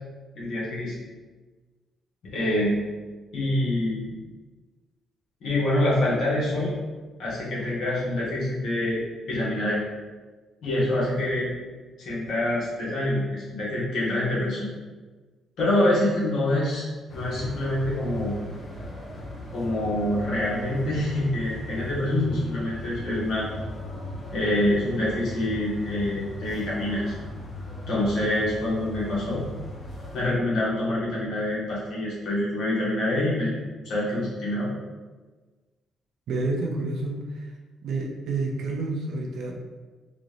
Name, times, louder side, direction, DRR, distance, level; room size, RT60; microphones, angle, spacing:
voice 1, 0.3-0.9 2.3-2.8 3.3-4.1 5.4-6.7 7.2-9.0 9.3-9.8 10.6-11.5 12.0-14.7 15.6-16.9 17.1-18.4 19.5-23.5 24.3-27.1 27.9-29.4 30.1-33.5 33.8-34.7, left 1 dB, 75° left, -7 dB, 1.5 m, -26 dB
sound 1, 17.1-30.2, left 1 dB, 50° left, 1.0 m, -37 dB
voice 2, 36.3-37.5 37.8-39.5, right 3 dB, 70° right, 0 dB, 0.6 m, -29 dB
4.0 x 2.5 x 3.3 m, 1.3 s
cardioid pair, 90°, 0 cm